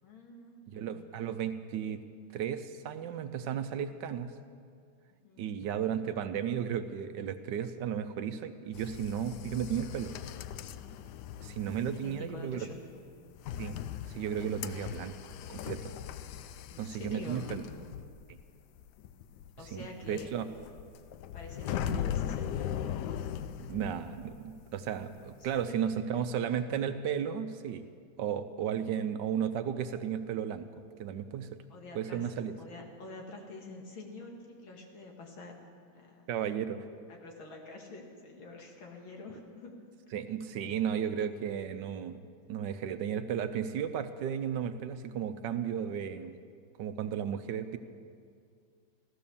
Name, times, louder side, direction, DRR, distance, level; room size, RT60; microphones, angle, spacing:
voice 1, 0.0-1.1 5.2-5.5 11.7-12.8 15.0-15.1 16.7-17.5 19.6-20.3 21.3-22.7 25.4-25.8 26.1-26.4 28.9-29.0 31.7-32.3 32.6-35.6 35.9-36.3 37.1-39.8, left 3 dB, 90° left, 1 dB, 2.7 m, -47 dB
voice 2, 0.7-2.0 2.3-4.3 5.4-10.1 11.4-12.7 13.6-13.8 14.1-15.1 15.5-15.9 16.8-17.6 18.3-18.4 19.7-20.5 21.9-22.0 23.7-27.9 28.2-30.7 31.0-31.5 31.9-32.5 36.3-36.9 40.1-42.2 42.5-46.4 46.8-47.8, right 8 dB, 70° right, 10 dB, 1.3 m, -34 dB
sound 1, 8.7-24.7 24.9-25.7, left 9 dB, 75° left, 1.0 m, -39 dB
15.5 x 13.0 x 7.0 m, 2.2 s
omnidirectional pair, 2.1 m